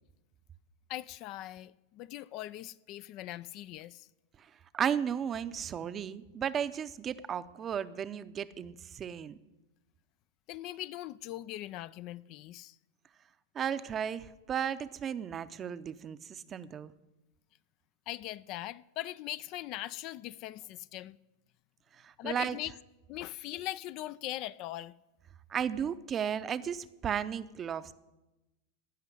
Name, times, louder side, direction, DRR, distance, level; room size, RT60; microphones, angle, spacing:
voice 1, 0.9-4.1 10.5-12.8 18.1-21.2 22.2-22.7 23.1-24.9, left 15 dB, 45° left, 0.4 m, -40 dB
voice 2, 4.7-9.4 13.5-16.9 22.0-22.6 25.5-27.9, right 8 dB, 25° right, 0.6 m, -34 dB
16.0 x 5.6 x 9.8 m
supercardioid pair, 130°, 0 cm